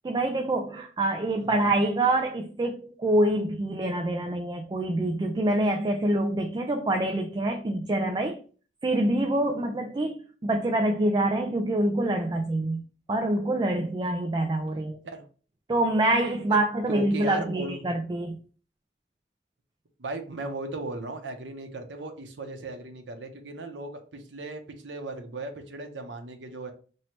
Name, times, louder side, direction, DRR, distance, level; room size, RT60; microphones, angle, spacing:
voice 1, 0.0-8.4 8.8-12.8 13.1-15.0 15.7-18.4, right 1 dB, 25° right, 0.3 m, -26 dB
voice 2, 1.4-1.7 15.0-15.3 16.5-16.6 16.9-17.9 20.0-26.7, right 2 dB, 85° right, 0.7 m, -37 dB
3.1 x 2.7 x 4.3 m
head